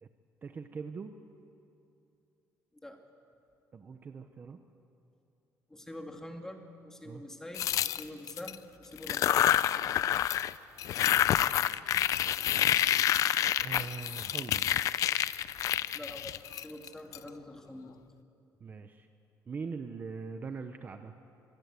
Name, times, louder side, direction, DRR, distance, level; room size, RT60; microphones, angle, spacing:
voice 1, 0.4-1.2 3.7-4.6 7.0-7.2 13.6-14.7 18.6-19.1 19.5-21.1, right 5 dB, 30° right, 7 dB, 0.9 m, -41 dB
voice 2, 5.7-9.5 15.9-17.9, left 1 dB, 10° left, 3 dB, 2.1 m, -45 dB
sound 1, 7.5-8.5 9.0-10.5 10.8-17.2, left 11 dB, 55° left, 0.5 m, -28 dB
25.0 x 21.0 x 8.3 m, 2.7 s
cardioid pair, 160°, 7 cm